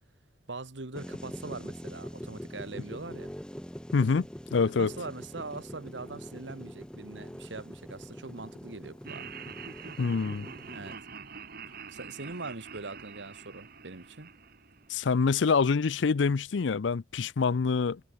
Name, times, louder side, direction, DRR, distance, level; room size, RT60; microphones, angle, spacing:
voice 1, 0.5-3.3 4.8-9.3 10.7-11.0 11.9-14.3, right 3 dB, 70° right, 1.5 m, -42 dB
sound 1, 0.9-11.0, equal, 5° left, 1.5 m, -43 dB
voice 2, 3.9-4.3 4.5-4.9 10.0-10.5 14.9-18.0, left 5 dB, 75° left, 0.5 m, -26 dB
Laughter, 9.0-15.2, right 5 dB, 55° right, 2.6 m, -45 dB
head